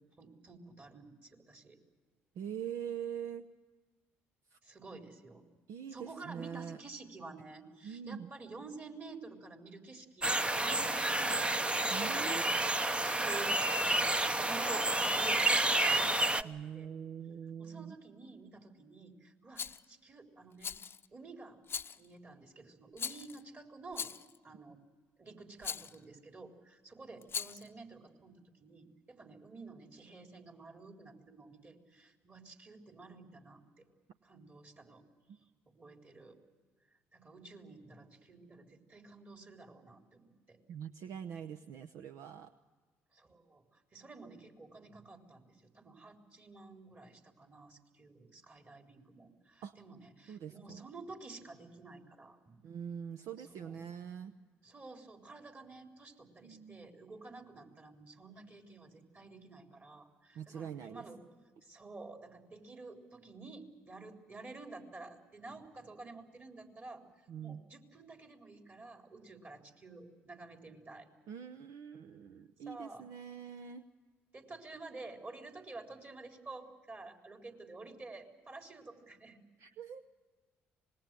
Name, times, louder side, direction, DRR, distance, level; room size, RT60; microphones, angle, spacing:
voice 1, 0.0-1.8 4.6-5.4 5.9-11.7 12.1-12.5 13.0-16.9 17.6-20.7 21.1-21.6 21.9-24.1 24.4-24.8 25.2-33.9 34.2-35.0 35.7-36.4 37.1-40.6 43.1-52.6 53.4-53.9 54.6-61.2 61.6-67.0 67.4-71.1 72.7-73.0 74.3-79.4, right 3 dB, 35° right, 3 dB, 4.0 m, -51 dB
voice 2, 2.4-3.5 4.5-4.6 5.7-6.8 7.8-8.3 11.9-12.4 16.4-17.9 40.7-42.5 49.6-49.7 50.3-50.8 52.6-54.3 56.4-56.8 60.3-61.1 67.3-67.6 71.3-73.8 79.6-80.0, right 8 dB, 70° right, 10 dB, 0.8 m, -43 dB
sound 1, 10.2-16.4, right 2 dB, 20° right, 0.8 m, -30 dB
Rattle, 19.6-19.8 20.6-21.1 21.7-22.1 23.0-23.4 23.9-24.4 25.6-26.0 27.2-27.7, left 7 dB, 45° left, 0.7 m, -40 dB
26.0 x 20.5 x 7.6 m, 1.4 s
hypercardioid pair, 55°, 6 cm